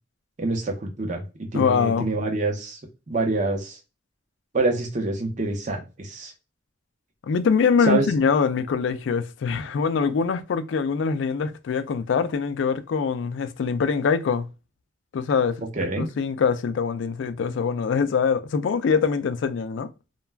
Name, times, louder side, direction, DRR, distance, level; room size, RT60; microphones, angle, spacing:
voice 1, 0.4-2.8 3.1-3.8 4.5-6.3 7.9-8.1 15.7-16.1, right 2 dB, 40° right, 0.7 m, -26 dB
voice 2, 1.5-2.1 7.3-14.5 15.1-19.9, left 5 dB, 85° left, 0.3 m, -23 dB
2.3 x 2.2 x 3.3 m
head